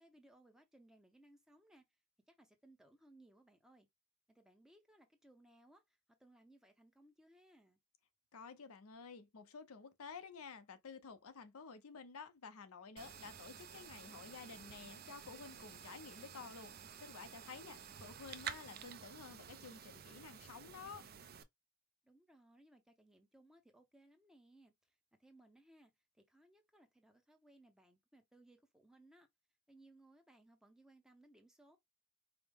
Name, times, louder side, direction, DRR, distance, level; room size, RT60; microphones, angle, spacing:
voice 1, 0.0-1.9 2.3-3.9 4.3-7.8 17.6-18.2 22.0-29.3 29.7-31.8, right 1 dB, 5° right, 0.6 m, -65 dB
voice 2, 8.3-21.0, left 5 dB, 90° left, 0.6 m, -52 dB
sound 1, 13.0-21.4, right 8 dB, 45° right, 0.4 m, -51 dB
4.8 x 2.1 x 3.5 m
head